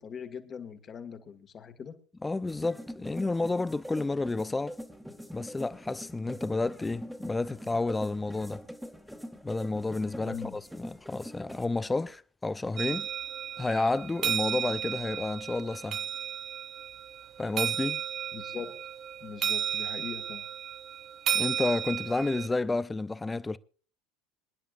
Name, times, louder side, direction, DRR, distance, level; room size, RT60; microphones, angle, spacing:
voice 1, 0.0-1.9 10.2-10.5 18.3-18.8 19.2-20.5, left 7 dB, 40° left, 1.9 m, -41 dB
voice 2, 2.2-4.8 5.3-8.6 9.4-13.1 13.6-16.0 17.4-18.0 21.3-23.6, left 3 dB, 15° left, 0.6 m, -31 dB
sound 1, 2.5-11.7, equal, ahead, 1.7 m, -43 dB
sound 2, 12.8-22.5, right 9 dB, 45° right, 0.7 m, -33 dB
26.0 x 10.5 x 2.5 m
hypercardioid pair, 80°, 0 cm